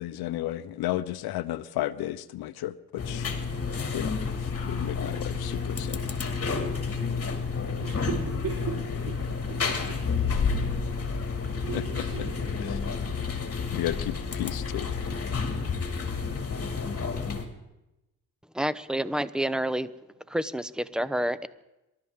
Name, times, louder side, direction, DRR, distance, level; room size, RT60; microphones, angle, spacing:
voice 1, 0.0-3.3 3.9-6.1 11.7-12.0 12.6-12.8 13.7-14.9, left 14 dB, 75° left, 11 dB, 0.7 m, -33 dB
sound 1, 3.0-17.4, left 5 dB, 40° left, 2.5 m, -30 dB
voice 2, 7.8-8.8 9.5-10.0 11.6-12.3 12.7-12.8, right 6 dB, 60° right, -4 dB, 4.0 m, -36 dB
voice 3, 18.5-19.9 20.3-21.5, right 1 dB, ahead, 15 dB, 0.8 m, -28 dB
27.0 x 12.5 x 3.7 m, 0.96 s
cardioid pair, 70°, 38 cm